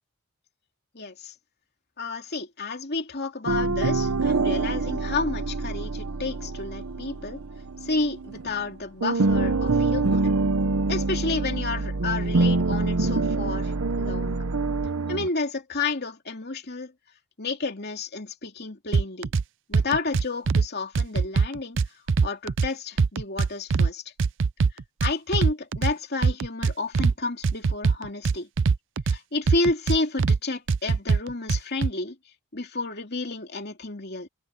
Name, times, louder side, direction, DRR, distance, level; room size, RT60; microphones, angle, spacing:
voice 1, 0.9-1.3 2.0-7.4 7.8-10.3 10.9-14.4 15.1-16.9 17.4-19.3 19.7-21.8 22.2-24.0 25.0-28.5 29.1-32.2 32.5-34.3, left 3 dB, 45° left, 2.9 m, -31 dB
sound 1, 3.5-8.7 9.0-15.3, right 3 dB, 75° right, 0.9 m, -25 dB
sound 2, 18.9-19.4 19.7-20.7 20.9-22.7 23.0-23.9 24.2-25.9 26.2-27.1 27.4-29.2 29.5-30.4 30.7-31.9, right 5 dB, 55° right, 0.5 m, -22 dB
open air
head